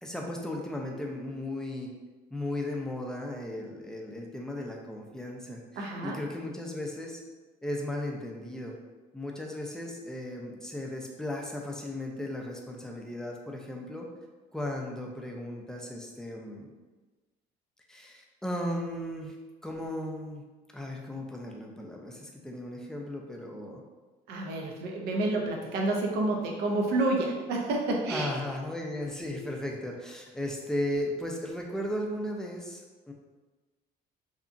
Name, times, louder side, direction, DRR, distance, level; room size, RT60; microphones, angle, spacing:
voice 1, 0.0-1.9 2.3-7.2 7.6-8.8 9.1-14.1 14.5-16.7 17.9-19.4 19.6-20.4 20.7-23.8 28.1-33.1, left 1 dB, 5° left, 0 dB, 0.4 m, -36 dB
voice 2, 5.8-6.2 24.3-28.3, right 2 dB, 75° right, 0 dB, 0.6 m, -29 dB
2.8 x 2.3 x 2.5 m, 1.3 s
cardioid pair, 110°, 17 cm